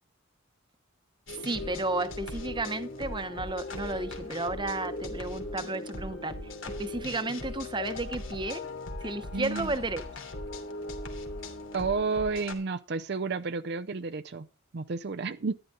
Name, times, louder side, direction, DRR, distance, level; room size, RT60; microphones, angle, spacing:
sound 1, 1.3-12.5, left 2 dB, 80° left, 2.9 m, -39 dB
voice 1, 1.4-8.6 9.0-10.0, right 2 dB, 25° right, 1.0 m, -33 dB
voice 2, 9.3-9.7 11.7-14.5 14.7-15.5, right 4 dB, 55° right, 0.6 m, -31 dB
13.0 x 11.5 x 3.9 m
head